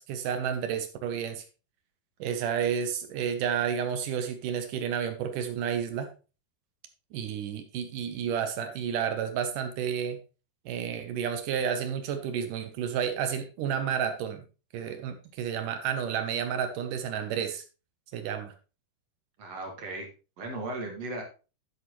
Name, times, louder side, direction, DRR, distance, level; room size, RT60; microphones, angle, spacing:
voice 1, 0.0-1.4 2.2-6.1 7.1-10.2 10.7-14.4 14.7-17.6 18.1-18.5, right 8 dB, 75° right, 7 dB, 2.0 m, -31 dB
voice 2, 19.4-20.1 20.4-21.2, right 2 dB, 50° right, 2 dB, 2.5 m, -36 dB
10.5 x 7.9 x 3.1 m, 0.33 s
omnidirectional pair, 4.7 m